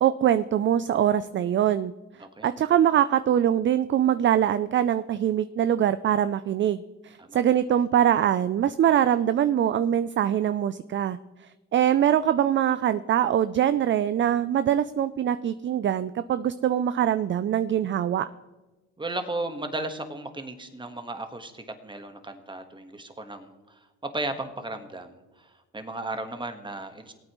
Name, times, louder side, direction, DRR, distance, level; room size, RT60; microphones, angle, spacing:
voice 1, 0.0-1.9 2.4-11.2 11.7-18.3, right 10 dB, 40° right, 13 dB, 0.4 m, -23 dB
voice 2, 19.0-23.8 24.1-27.1, right 2 dB, 15° right, 7 dB, 1.4 m, -35 dB
18.5 x 8.8 x 3.1 m, 1.1 s
cardioid pair, 90°, 30 cm